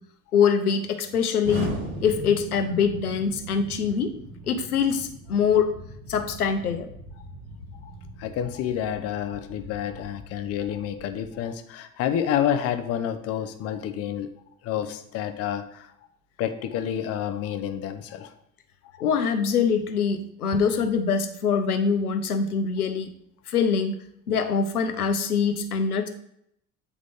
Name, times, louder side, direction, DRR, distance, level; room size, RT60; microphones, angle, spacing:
voice 1, 0.3-1.7 2.0-4.1 4.5-5.7 6.1-6.9 19.0-23.1 23.5-24.0 24.3-26.1, left 6 dB, 80° left, 8 dB, 0.7 m, -24 dB
Explosion, 1.4-11.4, right 1 dB, 70° right, 2.0 m, -39 dB
voice 2, 8.2-14.3 14.6-15.9 16.4-18.3 18.9-19.0, left 9 dB, 35° left, 10 dB, 0.5 m, -29 dB
8.2 x 3.7 x 3.5 m, 0.73 s
figure-of-eight pair, 65°, 44 cm